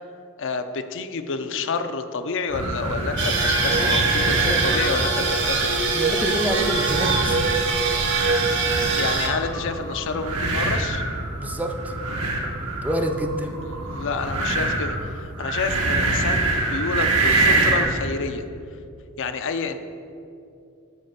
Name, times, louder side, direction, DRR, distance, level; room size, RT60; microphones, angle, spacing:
voice 1, 0.4-5.7 9.0-11.0 13.5-18.4 19.2-19.8, left 4 dB, 60° left, 8 dB, 0.5 m, -29 dB
sound 1, 2.5-18.0, right 2 dB, 80° right, 1.4 m, -25 dB
sound 2, 3.2-9.3, right 3 dB, 55° right, 1.1 m, -23 dB
voice 2, 5.9-7.4 11.4-11.9 12.8-13.5, right 1 dB, 5° right, 5 dB, 0.5 m, -27 dB
8.4 x 5.5 x 6.6 m, 2.5 s
head